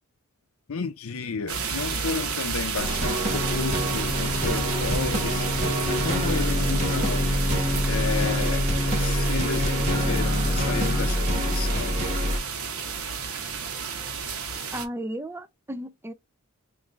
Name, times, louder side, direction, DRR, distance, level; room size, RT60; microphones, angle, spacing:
voice 1, 0.7-5.4 5.9-7.3 7.9-8.7 9.0-11.9, left 5 dB, 75° left, 0.6 m, -32 dB
sound 1, 1.5-14.9, right 5 dB, 80° right, 0.9 m, -31 dB
sound 2, 2.8-12.4, equal, 30° right, 1.1 m, -27 dB
sound 3, 3.3-11.1 11.5-11.6, left 1 dB, 35° left, 0.7 m, -30 dB
voice 2, 14.7-16.1, right 1 dB, 10° right, 0.4 m, -34 dB
3.1 x 2.6 x 3.7 m
head